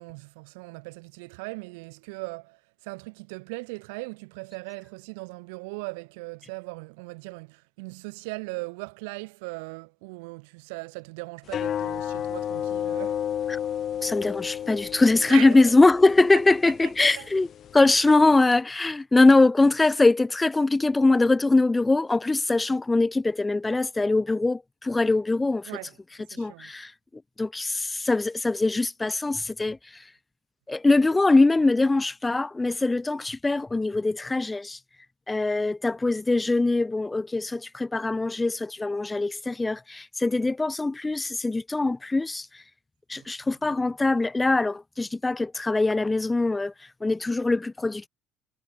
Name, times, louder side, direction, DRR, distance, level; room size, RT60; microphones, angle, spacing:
voice 1, 0.0-13.3 15.3-15.7 17.0-17.3 18.0-18.1 25.7-26.0 26.3-26.7 43.1-43.3, right 29 dB, 85° right, 2.5 m, -39 dB
sound 1, 11.5-18.4, left 9 dB, 50° left, 2.8 m, -33 dB
voice 2, 14.0-17.5 17.7-25.7 26.4-26.9 27.4-29.8 30.7-34.8 35.3-42.5 43.1-46.7 47.0-48.1, left 2 dB, 15° left, 0.8 m, -22 dB
supercardioid pair, 95°, 0 cm